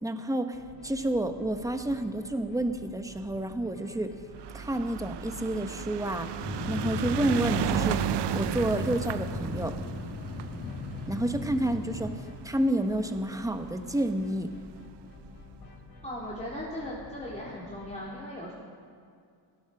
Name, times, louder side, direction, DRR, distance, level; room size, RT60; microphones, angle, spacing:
voice 1, 0.0-4.2 4.5-6.3 6.7-8.0 8.3-9.7 11.1-14.5, right 1 dB, 5° right, 7 dB, 1.3 m, -29 dB
sound 1, 0.5-18.0, left 2 dB, 50° left, 4.0 m, -50 dB
sound 2, 4.3-12.8 13.6-13.7 13.9-14.0 14.3-14.4, right 9 dB, 55° right, 0.8 m, -33 dB
sound 3, 6.4-12.1, left 3 dB, 30° left, 2.6 m, -36 dB
voice 2, 16.0-18.5, left 1 dB, 15° left, -6 dB, 3.8 m, -38 dB
17.0 x 12.5 x 5.0 m, 2.3 s
cardioid pair, 80°, 49 cm